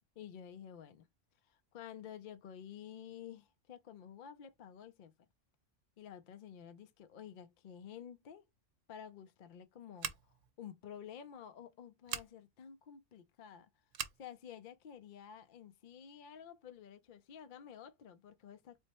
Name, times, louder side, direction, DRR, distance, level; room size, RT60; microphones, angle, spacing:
voice 1, 0.2-1.1 1.4-5.1 6.0-8.4 8.9-13.7 14.2-18.8, left 9 dB, 60° left, 0.5 m, -51 dB
Scissors, 10.0-10.5 12.0-12.3 13.9-14.2, right 10 dB, 85° right, 1.0 m, -41 dB
3.3 x 2.0 x 4.2 m
omnidirectional pair, 1.3 m